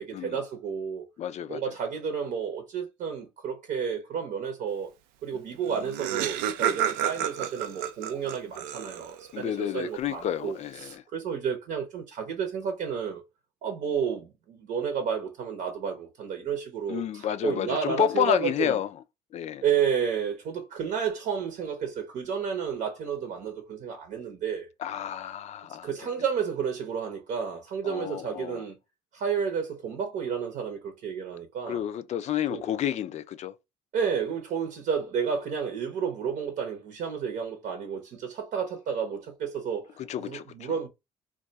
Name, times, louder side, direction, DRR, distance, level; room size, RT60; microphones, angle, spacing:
voice 1, 0.0-1.1 1.5-4.9 5.2-13.2 13.6-18.8 19.6-24.7 25.8-28.7 29.1-31.8 32.5-32.6 33.9-39.9 40.2-40.9, right 7 dB, 65° right, 0.8 m, -31 dB
voice 2, 1.2-1.6 9.3-11.0 16.9-18.9 19.3-19.6 24.8-25.9 27.8-28.6 31.7-33.5 40.1-40.8, left 10 dB, 50° left, 0.4 m, -30 dB
Laughter, 5.4-5.5 5.6-9.3, right 10 dB, 90° right, 0.4 m, -30 dB
2.3 x 2.3 x 3.9 m
supercardioid pair, 80°, 15 cm